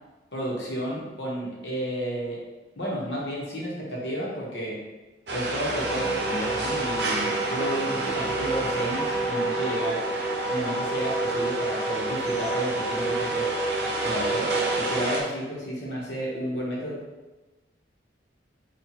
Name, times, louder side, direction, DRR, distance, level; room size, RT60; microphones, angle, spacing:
voice 1, 0.3-2.4 2.8-4.8 5.3-10.0 10.5-13.5 14.0-17.0, equal, 75° left, -4 dB, 1.1 m, -32 dB
sound 1, 5.3-15.2, right 2 dB, 65° right, 0.6 m, -31 dB
Wind instrument woodwind instrument, 5.9-15.2, right 2 dB, 10° left, 0.4 m, -29 dB
4.4 x 2.4 x 2.8 m, 1.1 s
head